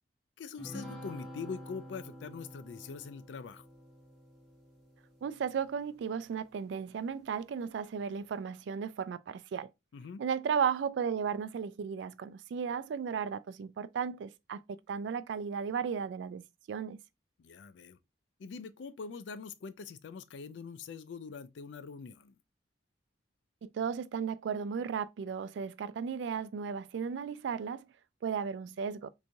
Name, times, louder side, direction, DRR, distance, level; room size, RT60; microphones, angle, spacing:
voice 1, 0.4-3.6 9.9-10.2 17.4-18.0 18.4-22.4, left 5 dB, 75° left, 0.4 m, -43 dB
sound 1, 0.6-6.2, equal, 5° left, 1.4 m, -49 dB
voice 2, 5.2-9.7 10.2-16.4 16.7-17.0 23.6-27.8 28.2-29.1, right 6 dB, 75° right, 0.3 m, -35 dB
3.4 x 3.0 x 2.6 m
head